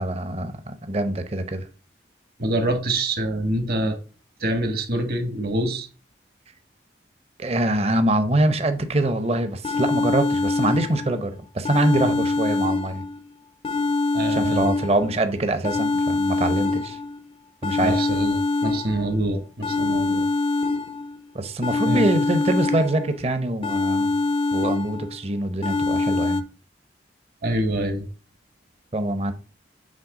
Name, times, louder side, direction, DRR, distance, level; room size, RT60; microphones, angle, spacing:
voice 1, 0.0-1.6 7.4-13.0 14.3-17.0 17.6-18.0 21.3-24.1 24.5-26.4 28.9-29.3, right 1 dB, 35° right, 0.7 m, -24 dB
voice 2, 2.4-4.0 4.4-5.9 14.1-14.6 17.8-20.3 21.8-22.1 27.4-28.1, right 1 dB, 55° right, 1.2 m, -25 dB
sound 1, 9.2-9.3 9.6-11.2 11.6-13.2 13.6-15.2 15.6-17.2 17.6-19.2 19.6-21.2 21.6-23.2 23.6-25.2 25.6-26.4, left 3 dB, 30° left, 0.4 m, -24 dB
7.5 x 3.4 x 4.8 m
head